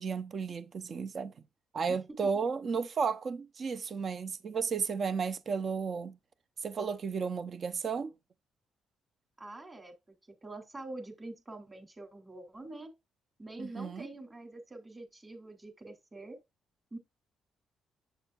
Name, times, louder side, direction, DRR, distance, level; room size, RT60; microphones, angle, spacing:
voice 1, 0.0-1.3 1.7-6.2 6.6-8.1 13.6-14.1, right 5 dB, 45° right, 0.8 m, -33 dB
voice 2, 9.4-9.9 10.4-12.9 13.4-16.4 16.9-17.0, right 2 dB, 20° right, 3.6 m, -45 dB
8.1 x 6.6 x 2.5 m
cardioid pair, 90°, 0 cm